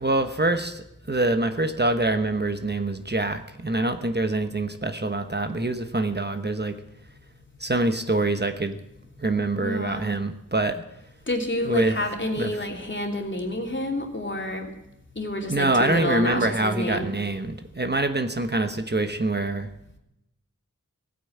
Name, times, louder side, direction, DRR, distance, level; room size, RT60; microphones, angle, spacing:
voice 1, 0.0-6.8 7.6-8.8 9.2-10.8 11.6-12.0 12.4-12.5 15.5-19.7, right 2 dB, 35° right, 7 dB, 1.1 m, -25 dB
voice 2, 9.6-10.1 11.3-14.7 15.1-17.1, left 1 dB, 40° left, 2 dB, 3.0 m, -29 dB
16.5 x 9.3 x 8.7 m, 0.85 s
wide cardioid pair, 55°, 31 cm